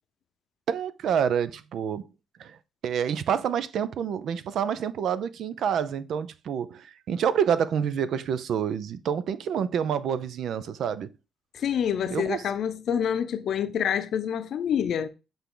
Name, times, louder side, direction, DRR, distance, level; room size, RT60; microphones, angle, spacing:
voice 1, 0.7-2.1 2.4-2.6 2.8-11.1 12.1-12.4, right 8 dB, 70° right, 0.5 m, -28 dB
voice 2, 11.5-15.1, left 8 dB, 65° left, 0.6 m, -27 dB
7.9 x 3.4 x 3.8 m
cardioid pair, 90°, 0 cm